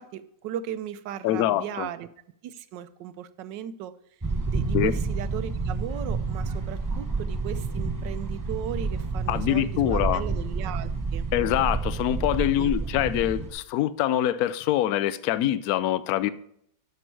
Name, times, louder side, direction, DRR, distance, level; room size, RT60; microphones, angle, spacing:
voice 1, 0.0-2.1 2.4-3.9 4.5-11.3 12.6-12.9, right 10 dB, 80° right, 1.3 m, -36 dB
voice 2, 1.2-1.9 4.7-4.9 9.3-10.2 11.3-16.3, left 13 dB, 70° left, 0.9 m, -24 dB
sound 1, 4.2-13.5, right 4 dB, 25° right, 0.4 m, -29 dB
12.0 x 6.1 x 4.6 m
omnidirectional pair, 2.0 m